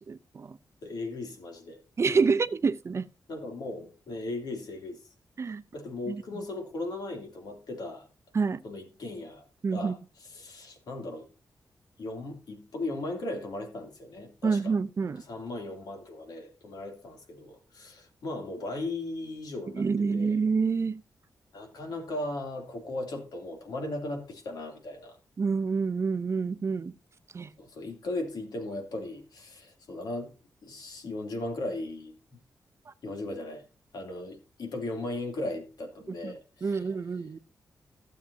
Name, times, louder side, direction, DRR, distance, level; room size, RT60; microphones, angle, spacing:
voice 1, 0.1-0.6 2.0-3.1 5.4-5.6 6.1-6.2 8.3-8.6 9.6-9.9 14.4-15.2 19.8-21.0 25.4-26.9 27.3-27.5 36.1-36.3 36.6-37.4, right 5 dB, 45° right, 0.6 m, -27 dB
voice 2, 0.8-1.8 2.1-2.4 3.3-5.0 5.7-8.1 8.6-9.4 9.7-11.3 12.0-14.7 15.1-19.9 20.1-20.4 21.5-25.2 27.6-30.3 30.6-32.1 33.0-33.6 33.9-37.2, left 2 dB, 80° left, 2.8 m, -37 dB
16.0 x 7.3 x 2.8 m
wide cardioid pair, 100°, 7 cm